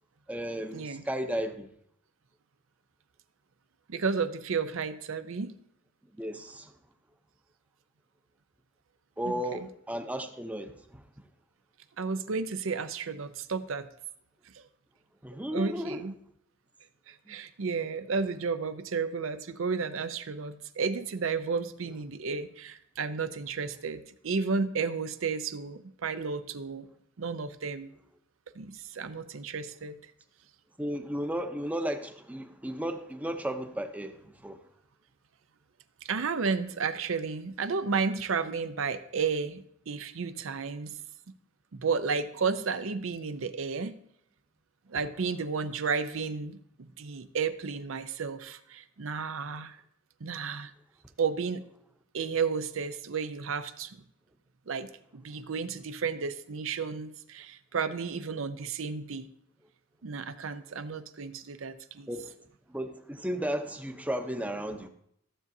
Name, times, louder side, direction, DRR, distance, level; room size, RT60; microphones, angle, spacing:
voice 1, 0.3-1.7 6.2-6.7 9.2-11.0 15.2-16.0 17.3-17.4 30.8-34.6 62.1-62.3 62.7-64.9, equal, 5° right, 6 dB, 0.6 m, -34 dB
voice 2, 3.9-5.5 9.3-9.4 12.0-13.9 14.5-14.6 15.5-16.1 17.1-26.9 27.2-27.9 28.5-30.0 36.0-41.0 41.7-44.0 44.9-49.8 50.2-50.7 51.2-51.6 52.1-54.0 54.7-59.3 60.0-62.1, right 5 dB, 90° right, 11 dB, 0.6 m, -32 dB
14.5 x 7.2 x 2.7 m, 0.72 s
head